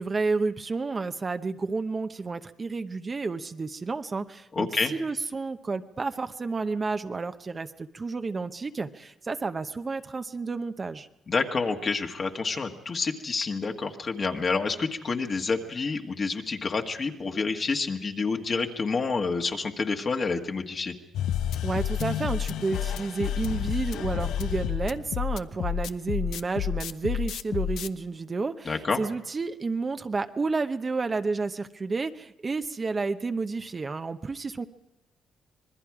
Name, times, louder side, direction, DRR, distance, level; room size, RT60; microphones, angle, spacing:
voice 1, 0.0-11.1 21.6-34.6, right 4 dB, 30° right, 8 dB, 0.8 m, -31 dB
voice 2, 4.5-4.9 11.3-20.9 28.6-29.0, left 4 dB, 40° left, 2 dB, 1.7 m, -28 dB
sound 1, 21.1-27.9, left 10 dB, 80° left, 0.6 m, -30 dB
26.0 x 20.0 x 4.9 m, 0.92 s
cardioid pair, 90°, 0 cm